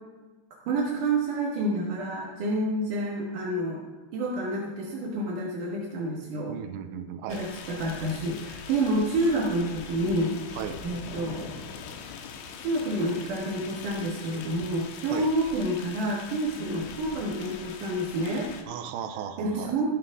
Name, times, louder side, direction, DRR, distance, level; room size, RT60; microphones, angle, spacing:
voice 1, 0.7-3.8 4.1-6.6 7.3-10.4 10.8-11.5 12.6-18.5 19.4-19.9, right 1 dB, 65° right, -3 dB, 2.2 m, -28 dB
voice 2, 6.5-7.5 10.6-10.8 15.1-15.3 18.7-19.8, right 8 dB, 85° right, 7 dB, 2.6 m, -36 dB
sound 1, 7.3-18.6, left 6 dB, 85° left, 3.3 m, -42 dB
15.0 x 11.0 x 3.6 m, 1.3 s
omnidirectional pair, 5.3 m